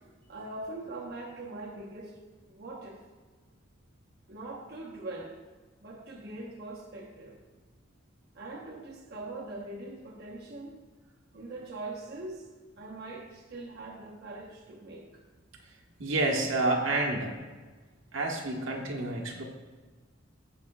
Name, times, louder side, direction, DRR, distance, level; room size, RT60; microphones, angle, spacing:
voice 1, 0.3-2.2 2.5-3.0 4.3-5.4 5.8-7.4 8.3-10.8 11.3-15.2, right 2 dB, 55° right, -2 dB, 1.1 m, -42 dB
voice 2, 16.0-17.4 18.1-19.4, right 2 dB, 80° right, 0 dB, 1.4 m, -29 dB
16.5 x 5.9 x 2.3 m, 1.3 s
head